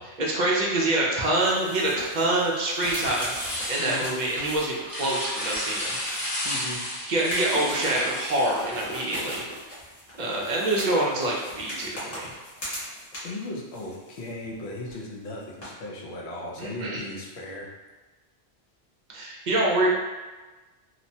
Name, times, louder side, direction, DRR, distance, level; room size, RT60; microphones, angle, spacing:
voice 1, 0.0-6.0 7.0-9.4 10.2-12.3 16.6-17.0 19.1-19.9, right 1 dB, 55° right, -3 dB, 0.5 m, -26 dB
sound 1, 1.2-6.7 7.2-13.4 13.7-14.6 14.9-15.0 15.6-15.7, equal, 50° left, 1.1 m, -38 dB
sound 2, 2.8-9.4, left 1 dB, 25° left, 0.5 m, -33 dB
voice 2, 6.4-6.8 13.2-17.7, left 1 dB, 75° left, -2 dB, 0.8 m, -37 dB
2.9 x 2.1 x 2.6 m, 1.2 s
omnidirectional pair, 1.1 m